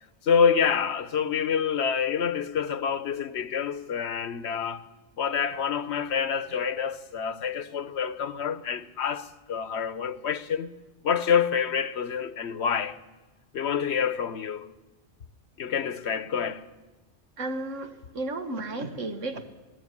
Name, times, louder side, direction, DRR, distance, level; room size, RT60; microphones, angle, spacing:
voice 1, 0.2-4.8 5.2-10.7 11.0-13.0 13.5-14.7 15.6-16.6, left 7 dB, 65° left, 1.1 m, -27 dB
voice 2, 17.4-19.5, right 2 dB, 90° right, 1.9 m, -33 dB
20.5 x 15.0 x 9.7 m
omnidirectional pair, 1.2 m